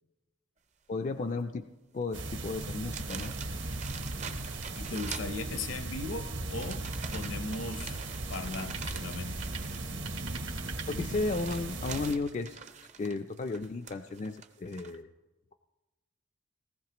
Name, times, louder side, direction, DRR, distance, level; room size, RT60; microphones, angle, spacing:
voice 1, 0.9-1.6 1.9-3.4 10.9-12.6 13.0-15.1, left 3 dB, 35° left, 7 dB, 0.3 m, -34 dB
sound 1, 2.0-2.1 2.5-5.9 6.5-15.0, right 6 dB, 35° right, 0.5 m, -46 dB
sound 2, 2.1-12.1, right 2 dB, 60° right, 1.0 m, -37 dB
voice 2, 4.8-6.9 7.1-8.0 8.3-9.5, left 3 dB, 75° left, 9 dB, 0.8 m, -38 dB
sound 3, 8.6-11.6, right 6 dB, 85° right, 1.8 m, -48 dB
19.0 x 14.5 x 2.9 m, 1.1 s
head